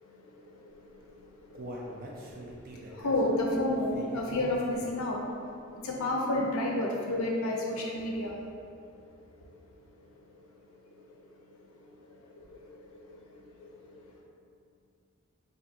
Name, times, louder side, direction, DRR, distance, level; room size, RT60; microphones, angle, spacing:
voice 1, 0.1-14.2, left 1 dB, 80° left, -1 dB, 0.5 m, -34 dB
Human voice, 0.9-5.1 5.5-5.6 6.1-6.2, right 1 dB, 45° right, 0.4 m, -44 dB
3.8 x 2.6 x 2.5 m, 2.4 s
head